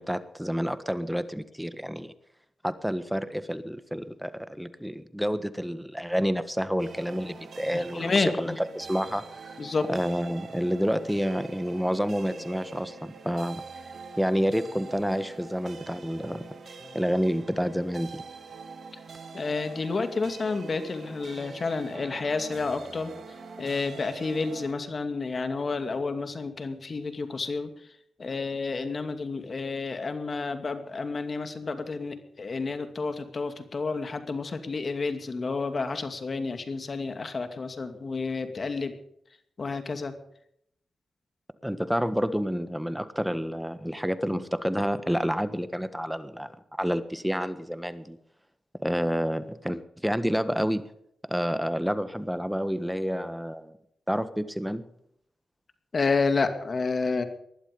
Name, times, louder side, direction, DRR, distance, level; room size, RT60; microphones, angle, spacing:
voice 1, 0.0-2.1 2.6-9.6 9.9-13.6 14.2-18.2 41.6-48.2 48.8-50.8 51.2-53.7 54.1-54.8, equal, ahead, 12 dB, 1.4 m, -29 dB
sound 1, 6.8-24.7, right 4 dB, 65° right, 2.7 m, -44 dB
voice 2, 7.9-8.6 9.6-9.9 19.3-23.1 23.6-27.7 28.2-38.9 39.6-40.1 55.9-57.2, left 4 dB, 45° left, 8 dB, 2.4 m, -30 dB
20.0 x 12.0 x 5.3 m, 0.72 s
cardioid pair, 75°, 0 cm